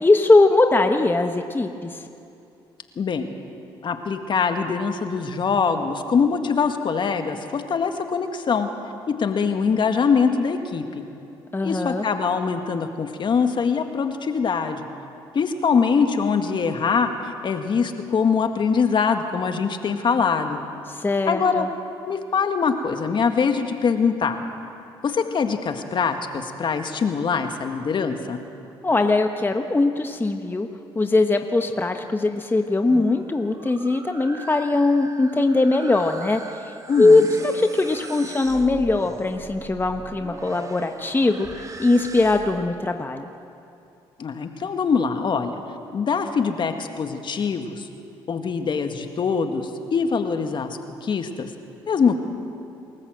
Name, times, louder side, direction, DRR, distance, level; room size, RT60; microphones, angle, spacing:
voice 1, 0.0-2.0 11.5-12.1 20.9-21.7 28.8-30.7 30.9-43.3, left 2 dB, 20° left, 5 dB, 1.2 m, -21 dB
voice 2, 3.0-3.3 3.8-8.7 9.1-10.8 11.6-14.9 15.3-20.6 21.3-21.7 22.1-24.4 25.0-28.4 36.9-37.2 44.2-45.6 45.9-47.9 48.3-51.5 51.9-52.2, left 5 dB, 50° left, 6 dB, 1.8 m, -23 dB
sound 1, 32.7-42.7, right 3 dB, 30° right, 1.4 m, -41 dB
28.0 x 14.0 x 7.8 m, 2.7 s
supercardioid pair, 65°, 10 cm